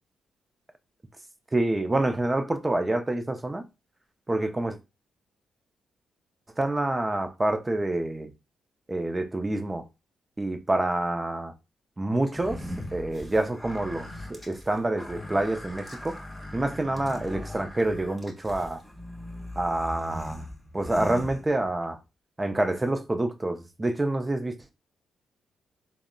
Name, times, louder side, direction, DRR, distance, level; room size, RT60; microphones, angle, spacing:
voice 1, 1.5-3.6 4.3-4.8 6.6-8.3 8.9-9.9 10.4-11.5 12.0-12.6 12.9-16.2 16.5-18.8 19.6-20.4 20.7-22.0 22.4-24.6, right 2 dB, 20° right, 0.5 m, -27 dB
sound 1, 12.3-21.9, left 1 dB, 5° right, 1.0 m, -40 dB
3.5 x 2.0 x 2.2 m
supercardioid pair, 65°, 0 cm